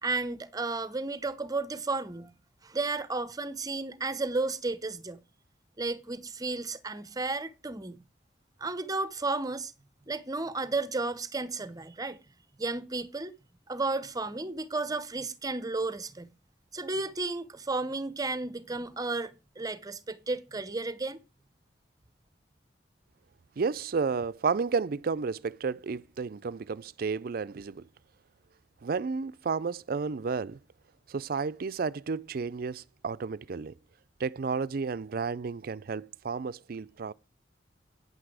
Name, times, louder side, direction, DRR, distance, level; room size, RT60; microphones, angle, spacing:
voice 1, 0.0-2.3 2.6-5.2 5.8-8.0 8.6-9.7 10.1-12.2 12.6-13.3 13.7-16.3 16.7-19.3 19.6-21.2, right 3 dB, 20° right, 0.8 m, -33 dB
voice 2, 23.6-27.8 28.8-30.6 31.1-33.7 34.2-37.1, right 5 dB, 55° right, 0.4 m, -32 dB
9.5 x 8.0 x 4.8 m
head